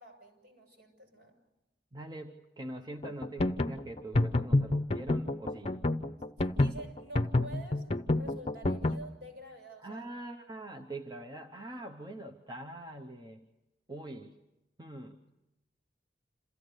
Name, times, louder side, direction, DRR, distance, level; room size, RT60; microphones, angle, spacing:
voice 1, 0.0-1.3 6.4-7.9 8.1-10.0 13.9-14.1, right 1 dB, 65° right, 2 dB, 6.7 m, -48 dB
voice 2, 1.9-5.8 9.8-13.5 13.9-14.4 14.8-15.2, right 1 dB, 20° right, 5 dB, 0.9 m, -43 dB
sound 1, 3.0-9.0, left 2 dB, 35° left, 0.8 m, -28 dB
27.5 x 15.0 x 8.1 m, 1.0 s
head